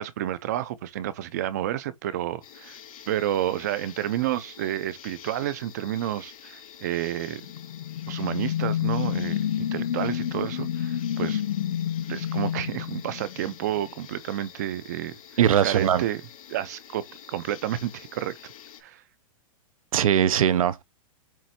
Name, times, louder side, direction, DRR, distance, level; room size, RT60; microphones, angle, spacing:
voice 1, 0.0-2.8 3.1-7.4 8.1-11.4 12.1-15.1 15.6-16.2 16.5-18.4 18.8-19.0, right 12 dB, 30° right, 0.5 m, -30 dB
sound 1, 2.4-18.8, left 9 dB, 90° left, 3.6 m, -47 dB
sound 2, 7.3-13.8, left 10 dB, 65° left, 0.8 m, -29 dB
voice 2, 15.4-16.0 19.9-20.8, right 9 dB, 80° right, 0.8 m, -20 dB
7.6 x 3.0 x 4.2 m
supercardioid pair, 180°, 18 cm